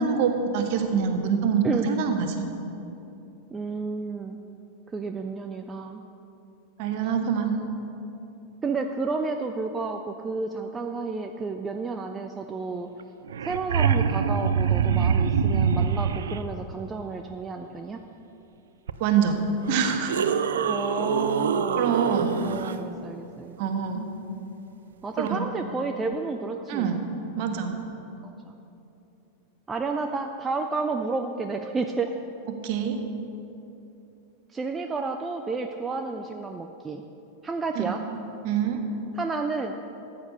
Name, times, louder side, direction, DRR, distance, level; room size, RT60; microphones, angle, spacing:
voice 1, 0.0-2.4 6.8-7.5 19.0-19.4 19.7-20.3 21.8-22.4 23.6-24.1 25.2-25.4 26.7-27.0 27.4-27.8 32.6-33.0 37.7-37.9 38.4-38.8, right 6 dB, 45° right, 5 dB, 1.3 m, -25 dB
voice 2, 3.5-4.4 4.9-6.0 8.6-12.9 13.4-18.0 20.6-21.8 22.4-23.6 25.0-27.1 28.2-28.5 29.7-32.1 34.5-37.0 37.4-38.0 39.1-39.8, right 4 dB, 15° right, 5 dB, 0.5 m, -31 dB
sound 1, 13.0-13.1 13.3-16.4 18.9-19.0 19.6-22.7 25.3-25.4, right 6 dB, 65° right, 0.5 m, -24 dB
14.0 x 8.7 x 5.5 m, 2.9 s
figure-of-eight pair, 90°, 0 cm